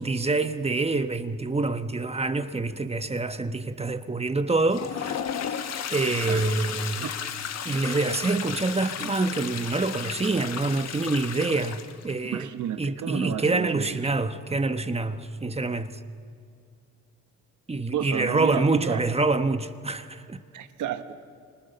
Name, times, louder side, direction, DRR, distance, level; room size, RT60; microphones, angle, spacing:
voice 1, 0.0-5.2 5.9-7.1 7.6-12.5 12.8-16.0 17.7-20.4, right 3 dB, 20° right, 1.2 m, -26 dB
Toilet flush, 4.5-12.2, left 8 dB, 60° left, 1.4 m, -34 dB
voice 2, 12.2-14.1 17.9-19.0 20.5-21.1, right 9 dB, 80° right, 1.6 m, -32 dB
30.0 x 26.5 x 6.8 m
cardioid pair, 90°, 30 cm